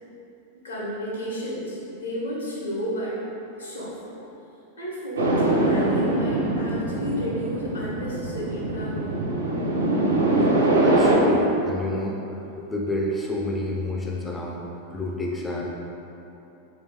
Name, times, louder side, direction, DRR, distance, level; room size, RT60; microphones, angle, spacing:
voice 1, 0.6-3.2 3.6-4.2 4.8-9.1, equal, 75° left, -5 dB, 0.8 m, -32 dB
sound 1, 5.2-11.2, right 2 dB, 70° right, 0.5 m, -23 dB
voice 2, 10.7-12.2 12.6-15.7, left 1 dB, 10° left, -2 dB, 0.3 m, -29 dB
3.1 x 3.1 x 3.0 m, 2.9 s
figure-of-eight pair, 90°, 0 cm